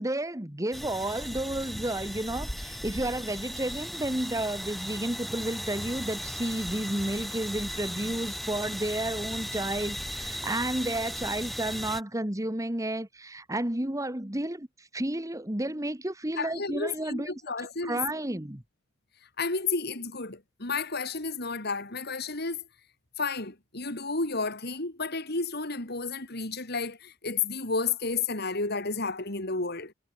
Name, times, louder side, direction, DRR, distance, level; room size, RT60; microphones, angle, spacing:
voice 1, 0.0-17.3 17.8-18.6, right 1 dB, 15° right, 1.7 m, -31 dB
sound 1, 0.7-12.0, equal, ahead, 4.2 m, -37 dB
voice 2, 16.4-18.0 19.4-22.6 23.2-29.9, left 4 dB, 55° left, 3.8 m, -32 dB
head